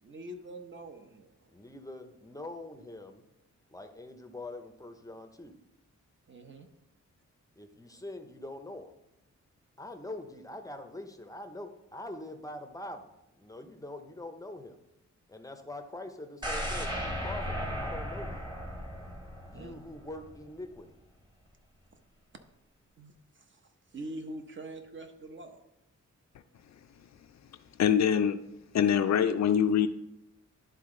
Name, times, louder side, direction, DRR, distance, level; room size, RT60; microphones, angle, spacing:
voice 1, 0.0-1.5 6.3-6.7 19.5-19.7 23.0-23.6 23.9-25.6, right 1 dB, 40° right, 6 dB, 0.8 m, -44 dB
voice 2, 1.5-3.2 3.7-5.6 7.6-8.9 9.8-14.8 15.3-18.5 19.4-21.0, left 1 dB, 10° left, 6 dB, 0.6 m, -44 dB
sound 1, 16.4-20.4 20.8-20.9, equal, 15° right, 1.2 m, -36 dB
voice 3, 27.8-28.4 28.7-29.9, left 8 dB, 65° left, 10 dB, 0.5 m, -24 dB
11.5 x 3.9 x 3.7 m, 0.86 s
wide cardioid pair, 125°, 30 cm